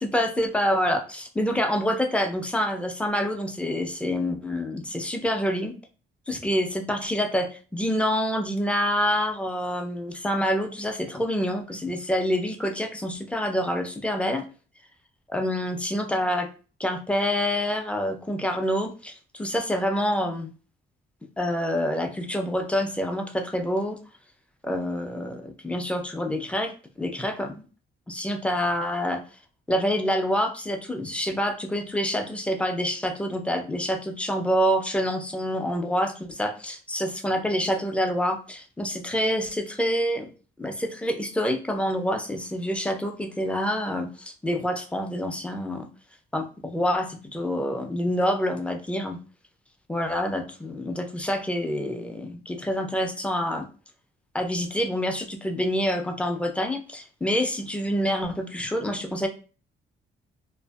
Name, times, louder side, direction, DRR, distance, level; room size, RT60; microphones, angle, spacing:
voice 1, 0.0-5.7 6.3-14.4 15.3-16.5 16.8-20.5 21.4-24.0 24.6-27.7 28.1-29.2 29.7-40.3 40.6-45.9 46.3-49.2 49.9-53.7 54.3-59.3, equal, 5° left, 5 dB, 0.4 m, -27 dB
2.5 x 2.5 x 2.3 m, 0.36 s
cardioid pair, 90°, 20 cm